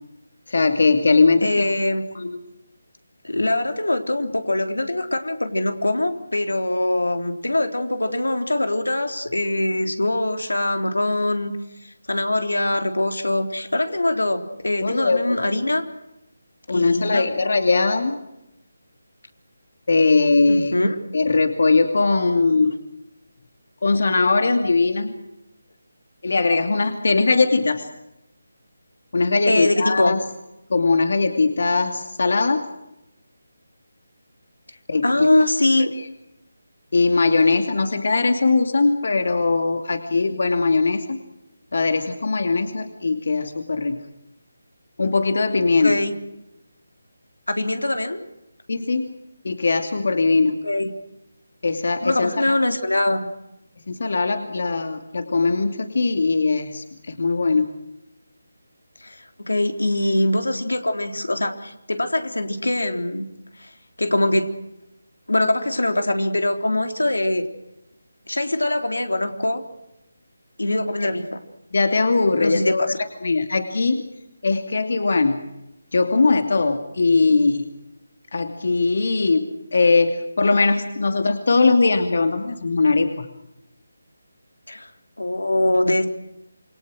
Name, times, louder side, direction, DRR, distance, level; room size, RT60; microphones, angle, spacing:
voice 1, 0.5-1.7 2.1-2.4 14.8-15.4 16.7-18.2 19.9-20.8 21.1-22.8 23.8-25.1 26.2-27.9 29.1-30.2 30.7-32.7 34.9-35.3 35.8-35.9 36.9-41.2 41.7-44.0 45.0-46.0 48.7-49.1 49.4-50.6 51.6-52.3 53.9-57.7 71.7-72.9 73.2-74.0 74.4-75.4 75.9-77.6 78.3-83.3, left 3 dB, 60° left, 7 dB, 2.6 m, -20 dB
voice 2, 1.4-2.2 3.2-11.5 11.8-15.8 16.7-17.3 20.5-21.0 29.5-30.1 35.0-35.9 45.8-46.1 47.5-48.3 50.6-50.9 52.0-53.3 59.0-63.3 63.6-63.7 64.0-64.6 65.3-67.5 68.3-69.6 70.6-71.4 72.4-73.0 84.7-84.9 85.2-86.1, left 1 dB, 90° left, 6 dB, 3.6 m, -23 dB
28.0 x 23.0 x 6.4 m, 0.89 s
figure-of-eight pair, 160°, 0 cm